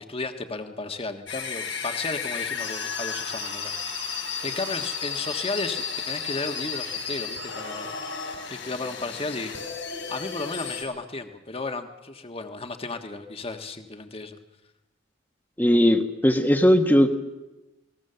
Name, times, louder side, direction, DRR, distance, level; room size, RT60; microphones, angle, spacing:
voice 1, 0.0-4.0 4.4-7.9 8.5-9.5 10.1-14.4, left 3 dB, 30° left, 6 dB, 1.4 m, -34 dB
sound 1, 1.3-10.8, left 5 dB, 80° left, 5.3 m, -33 dB
voice 2, 15.6-17.1, equal, 10° left, 6 dB, 1.2 m, -19 dB
29.0 x 19.5 x 6.9 m, 1.0 s
head